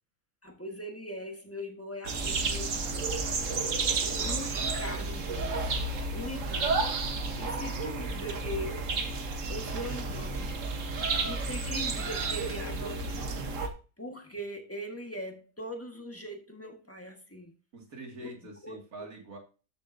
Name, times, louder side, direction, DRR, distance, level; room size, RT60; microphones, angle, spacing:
voice 1, 0.4-3.0 4.2-5.7 6.1-6.8 7.4-8.8 9.5-10.6 11.2-13.4 14.0-17.5 18.2-18.3 18.6-19.1, equal, 10° left, 1.4 m, -41 dB
sound 1, 2.0-13.7, right 3 dB, 65° right, 1.5 m, -31 dB
voice 2, 17.7-19.4, right 1 dB, 80° right, 2.7 m, -45 dB
13.0 x 6.9 x 2.7 m
omnidirectional pair, 1.5 m